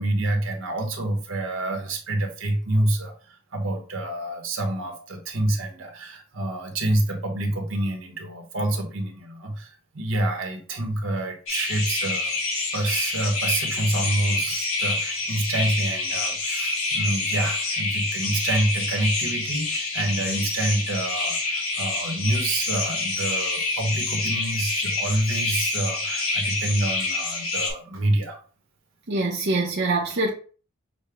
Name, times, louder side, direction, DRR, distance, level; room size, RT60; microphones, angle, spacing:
voice 1, 0.0-12.3 12.7-28.4, right 1 dB, 70° right, 1.1 m, -27 dB
sound 1, 11.5-27.7, left 3 dB, 85° left, 1.7 m, -27 dB
voice 2, 29.1-30.3, right 2 dB, 50° right, 0.6 m, -24 dB
6.4 x 2.1 x 3.5 m
head